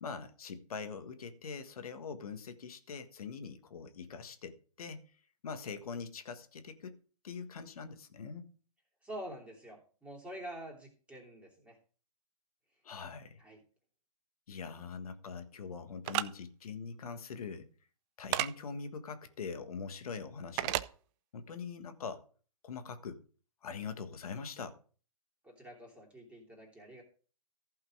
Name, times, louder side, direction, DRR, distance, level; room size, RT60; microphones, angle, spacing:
voice 1, 0.0-5.0 5.4-7.0 7.2-8.5 12.8-13.4 14.5-17.7 18.2-20.8 21.3-22.3 22.6-23.2 23.6-24.8, left 5 dB, 70° left, 1.7 m, -43 dB
voice 2, 9.0-11.8 13.4-13.6 25.4-27.0, right 1 dB, 5° right, 3.1 m, -47 dB
sound 1, 16.0-16.3 18.3-18.5 20.6-20.9, right 16 dB, 30° right, 0.5 m, -31 dB
14.5 x 5.7 x 4.9 m
hypercardioid pair, 135°, 19 cm